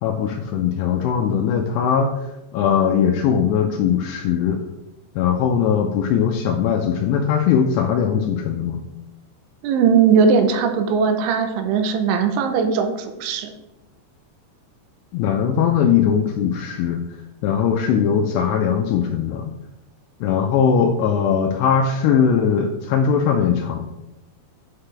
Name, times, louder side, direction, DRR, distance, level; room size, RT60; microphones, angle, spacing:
voice 1, 0.0-4.6 5.2-8.8 15.1-19.5 20.2-23.8, left 7 dB, 85° left, 4 dB, 2.4 m, -20 dB
voice 2, 9.6-13.5, right 6 dB, 85° right, 7 dB, 3.0 m, -19 dB
8.0 x 5.8 x 3.3 m, 1.0 s
omnidirectional pair, 5.3 m